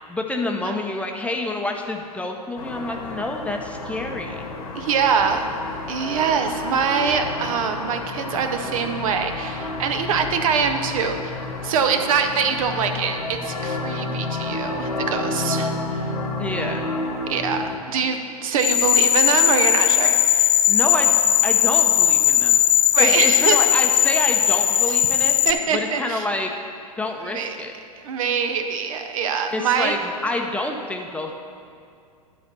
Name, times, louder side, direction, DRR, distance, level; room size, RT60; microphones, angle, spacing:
voice 1, 0.1-4.4 16.4-16.8 20.7-21.1 21.4-22.6 23.0-25.3 25.7-26.5 27.0-27.7 29.5-30.0 30.2-31.3, left 2 dB, 5° left, 2 dB, 0.6 m, -27 dB
sound 1, 2.6-17.8, left 2 dB, 75° left, 1.3 m, -30 dB
voice 2, 4.7-5.5 5.9-16.1 17.3-20.6 22.9-23.6 24.9-25.0 25.4-26.3 27.2-27.6 28.0-30.0, right 6 dB, 60° right, 7 dB, 0.8 m, -24 dB
sound 2, 18.6-25.5, left 10 dB, 55° left, 0.8 m, -18 dB
11.0 x 4.2 x 6.7 m, 2.3 s
hypercardioid pair, 100°, 19 cm